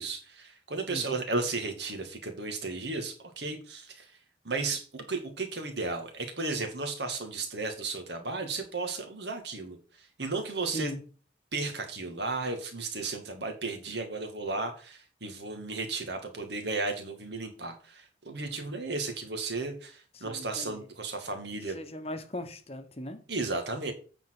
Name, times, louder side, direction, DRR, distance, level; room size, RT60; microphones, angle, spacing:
voice 1, 0.0-4.1 4.4-10.9 11.5-21.8 23.3-23.9, right 3 dB, 65° right, 2.2 m, -34 dB
voice 2, 20.1-20.9 21.7-23.2, left 1 dB, 35° left, 1.0 m, -38 dB
8.9 x 4.4 x 6.0 m
head